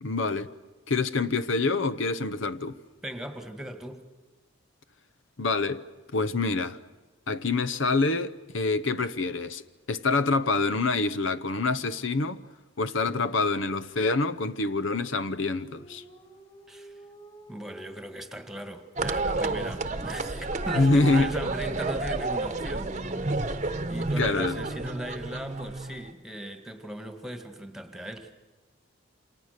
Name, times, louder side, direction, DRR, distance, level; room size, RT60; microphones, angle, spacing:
voice 1, 0.0-0.5 0.9-2.8 5.4-5.8 6.1-6.8 7.3-9.6 9.9-12.4 12.8-16.0 20.8-21.3 24.2-24.6, left 3 dB, 75° left, 0.9 m, -26 dB
voice 2, 3.0-4.0 16.7-16.9 17.5-23.6 23.9-28.3, right 1 dB, ahead, 1.7 m, -38 dB
Dog, 14.4-17.9, right 2 dB, 25° left, 5.9 m, -52 dB
sound 1, 19.0-26.1, right 3 dB, 35° right, 1.0 m, -31 dB
29.0 x 27.5 x 6.7 m
head